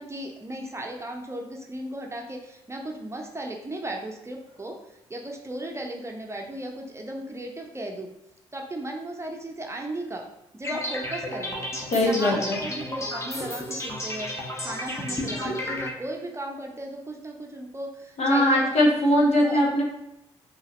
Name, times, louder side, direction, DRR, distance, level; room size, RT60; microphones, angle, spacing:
voice 1, 0.0-4.8 5.1-8.1 8.5-10.2 10.5-14.3 14.6-18.7 19.1-19.6, right 1 dB, 20° right, 1 dB, 0.7 m, -36 dB
sound 1, 10.6-15.9, left 1 dB, 20° left, 1.2 m, -32 dB
voice 2, 11.9-12.6 18.2-19.8, left 1 dB, 50° left, -1 dB, 1.1 m, -21 dB
5.5 x 2.8 x 3.0 m, 0.83 s
figure-of-eight pair, 40°, 14 cm